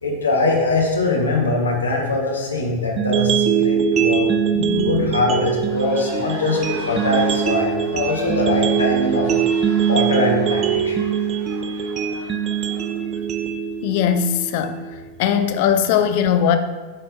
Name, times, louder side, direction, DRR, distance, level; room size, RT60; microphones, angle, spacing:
voice 1, 0.0-4.3 4.8-9.3 9.9-11.0, left 3 dB, 75° left, -1 dB, 1.2 m, -22 dB
sound 1, 3.0-15.0, right 8 dB, 30° right, 0.4 m, -22 dB
voice 2, 4.5-5.1 13.8-14.8 15.2-16.6, left 8 dB, 50° left, 8 dB, 0.4 m, -20 dB
sound 2, 5.6-13.2, right 1 dB, 50° right, 1.9 m, -39 dB
8.4 x 4.4 x 2.6 m, 1.3 s
figure-of-eight pair, 90°, 0 cm